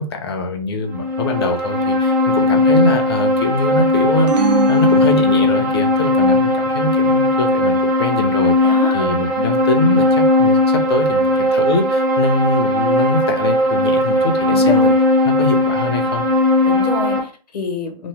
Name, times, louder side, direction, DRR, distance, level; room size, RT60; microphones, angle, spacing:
voice 1, 0.0-14.9 15.2-16.3, left 2 dB, 40° left, 4 dB, 0.6 m, -23 dB
sound 1, 0.9-17.2, left 1 dB, 25° right, 0.7 m, -17 dB
sound 2, 4.3-5.9, right 8 dB, 90° right, 0.4 m, -24 dB
voice 2, 8.6-9.2 14.5-15.0 16.6-18.1, left 4 dB, 80° left, 4 dB, 0.9 m, -26 dB
2.9 x 2.0 x 3.2 m, 0.37 s
hypercardioid pair, 170°, 21 cm